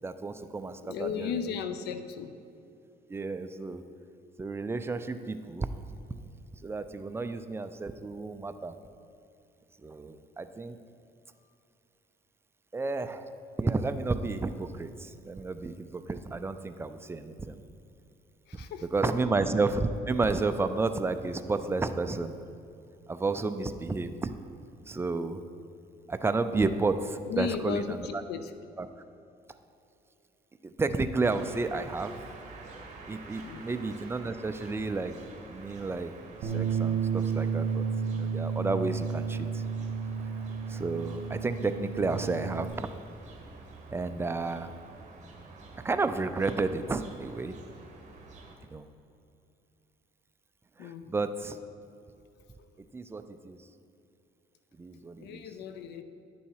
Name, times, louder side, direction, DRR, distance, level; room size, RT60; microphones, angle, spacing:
voice 1, 0.0-1.6 3.1-3.8 4.4-5.7 6.6-8.8 9.8-10.8 12.7-13.3 13.6-17.6 18.8-22.4 23.1-24.3 24.9-25.4 26.1-28.2 28.8-28.9 30.6-32.1 33.1-35.2 35.5-36.1 36.4-37.8 38.1-39.6 40.7-42.9 43.9-44.7 45.8-47.6 48.6-48.9 50.8-51.6 52.9-53.7 54.8-55.4, right 3 dB, 15° right, 9 dB, 0.5 m, -31 dB
voice 2, 0.8-2.3 18.5-18.8 27.2-28.5 33.4-33.6 50.8-51.0 55.2-56.0, left 7 dB, 75° left, 10 dB, 0.6 m, -35 dB
sound 1, 31.2-48.6, right 3 dB, 45° right, 1.5 m, -49 dB
Bass guitar, 36.4-42.7, right 6 dB, 65° right, 1.2 m, -32 dB
10.5 x 7.0 x 4.8 m, 2.6 s
cardioid pair, 110°, 17 cm